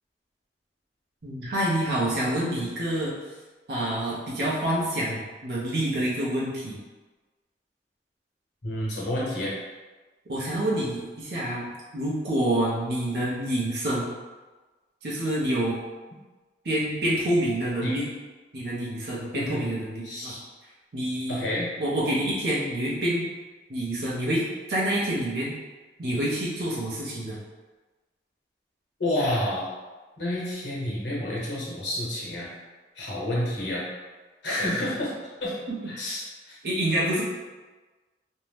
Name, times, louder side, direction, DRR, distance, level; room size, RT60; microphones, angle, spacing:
voice 1, 1.2-3.1 3.7-6.8 10.3-14.1 15.0-15.8 16.6-18.1 18.5-20.3 20.9-21.4 21.8-23.3 23.7-24.4 24.7-25.6 26.0-27.4 34.7-34.9 35.7-35.8 36.6-37.2, right 1 dB, 65° right, -6 dB, 0.6 m, -27 dB
voice 2, 8.6-9.5 17.8-18.0 19.3-19.6 20.0-20.4 21.3-21.7 29.0-29.7 30.2-32.5 33.0-33.8 34.4-35.1 35.4-35.6 35.9-36.6, left 1 dB, 90° left, -5 dB, 1.0 m, -29 dB
2.6 x 2.1 x 3.2 m, 1.3 s
head